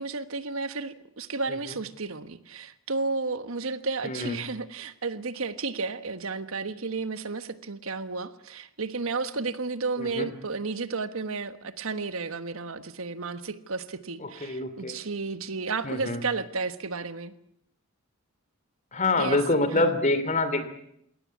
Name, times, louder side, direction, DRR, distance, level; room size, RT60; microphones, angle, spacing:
voice 1, 0.0-17.3 19.2-19.4 19.7-19.9, right 4 dB, 75° right, 11 dB, 1.3 m, -32 dB
voice 2, 4.0-4.4 10.0-10.3 14.2-15.0 15.8-16.2 18.9-20.7, left 2 dB, 35° left, 11 dB, 3.0 m, -26 dB
21.0 x 18.0 x 9.7 m, 0.74 s
head